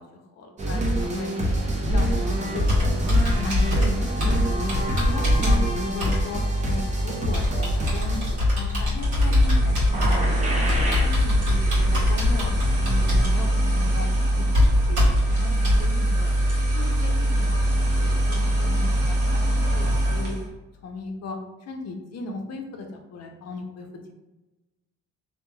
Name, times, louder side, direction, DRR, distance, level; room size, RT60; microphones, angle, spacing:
voice 1, 0.0-1.3 1.9-3.1 3.4-10.7 11.0-14.2 14.5-14.6 14.9-16.3 16.7-20.4 20.8-24.1, left 3 dB, 60° left, 4 dB, 0.6 m, -37 dB
sound 1, 0.6-8.8 9.9-11.2 11.6-12.0 12.3-12.4, right 1 dB, 25° right, 0.6 m, -26 dB
Computer keyboard, 1.9-15.8, left 2 dB, 75° right, 1.4 m, -24 dB
sound 2, 8.9-20.5, right 1 dB, 55° right, 1.0 m, -22 dB
3.1 x 2.3 x 2.2 m, 1.1 s
cardioid pair, 90°, 30 cm